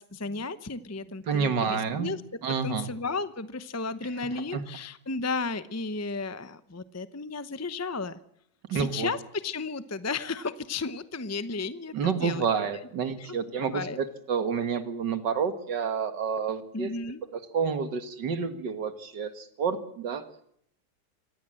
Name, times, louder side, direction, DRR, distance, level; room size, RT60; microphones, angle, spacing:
voice 1, 0.0-2.2 2.6-8.2 8.7-12.4 12.7-12.8 13.2-13.3 13.6-14.0 16.7-17.2, left 4 dB, 20° left, 13 dB, 0.4 m, -34 dB
voice 2, 1.3-2.1 2.4-2.9 4.5-4.6 8.7-9.1 11.9-16.9 17.5-20.2, right 6 dB, 85° right, 10 dB, 2.3 m, -29 dB
25.0 x 18.0 x 7.7 m, 0.72 s
omnidirectional pair, 1.8 m